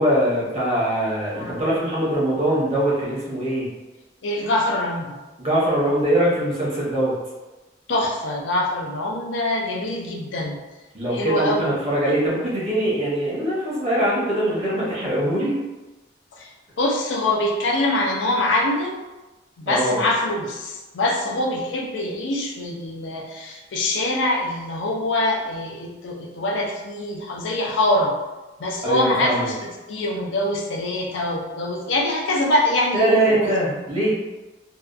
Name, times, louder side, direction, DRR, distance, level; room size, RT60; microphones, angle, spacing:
voice 1, 0.0-3.7 5.4-7.1 10.9-15.5 19.7-20.0 28.8-29.5 32.9-34.2, right 1 dB, 30° right, -7 dB, 0.8 m, -22 dB
voice 2, 4.2-5.1 7.9-10.6 11.1-11.8 16.3-19.0 19.6-28.1 28.6-33.5, left 1 dB, 75° left, 0 dB, 0.5 m, -24 dB
2.7 x 2.2 x 2.3 m, 1.1 s
head